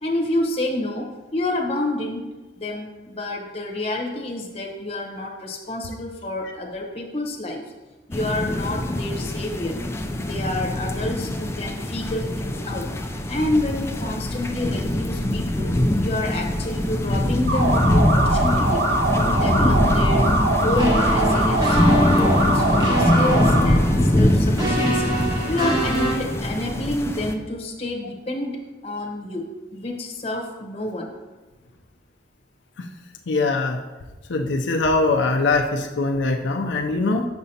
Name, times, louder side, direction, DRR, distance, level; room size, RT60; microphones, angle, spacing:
voice 1, 0.0-2.3 2.6-7.6 8.1-9.8 10.2-12.9 13.3-15.7 16.0-18.8 19.3-20.3 20.6-21.8 22.1-25.1 25.5-31.1, left 1 dB, 35° left, 0 dB, 0.9 m, -28 dB
sound 1, 8.1-27.3, left 1 dB, 15° left, 0.4 m, -23 dB
sound 2, 17.5-23.6, right 1 dB, 70° right, 1.2 m, -22 dB
sound 3, 20.8-26.2, equal, 25° right, 1.3 m, -25 dB
voice 2, 33.3-33.8 34.3-37.3, left 3 dB, 90° left, 3 dB, 0.5 m, -22 dB
6.7 x 6.1 x 2.8 m, 1.2 s
head